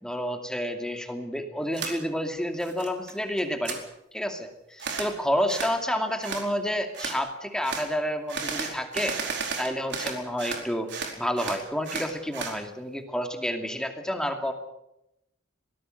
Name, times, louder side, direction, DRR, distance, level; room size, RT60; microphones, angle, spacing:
voice 1, 0.0-3.8 4.1-9.2 9.6-10.9 11.2-14.5, equal, 5° left, 5 dB, 2.5 m, -29 dB
sound 1, 1.7-1.9 2.4-3.1 3.4-3.8 4.8-5.1 5.5-5.8 6.2-6.4 6.9-7.2 7.6-7.9 8.3-10.6 10.9-12.6, right 5 dB, 60° right, 4.7 m, -33 dB
24.5 x 19.0 x 6.6 m, 0.84 s
head